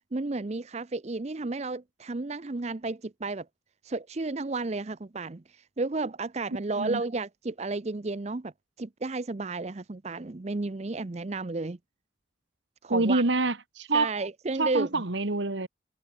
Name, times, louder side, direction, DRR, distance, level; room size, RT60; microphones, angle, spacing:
voice 1, 0.1-3.5 3.8-8.5 8.8-11.8 12.8-13.2 13.9-15.0, right 3 dB, 35° right, 0.6 m, -32 dB
voice 2, 6.7-7.0 12.9-14.1 14.6-15.7, right 2 dB, 70° right, 1.6 m, -26 dB
head